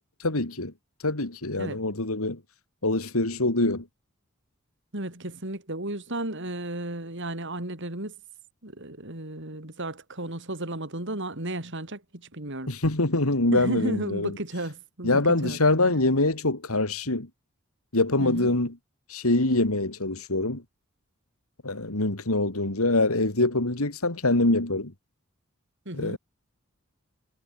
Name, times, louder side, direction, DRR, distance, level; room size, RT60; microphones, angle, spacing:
voice 1, 0.2-0.7 1.0-2.4 2.8-3.8 12.7-14.3 15.0-17.3 17.9-18.7 19.1-20.6 21.6-24.9 25.9-26.2, left 2 dB, 85° left, 3.0 m, -24 dB
voice 2, 4.9-8.1 8.6-12.7 13.5-15.9 18.2-18.5 25.9-26.2, right 1 dB, 55° right, 4.4 m, -34 dB
head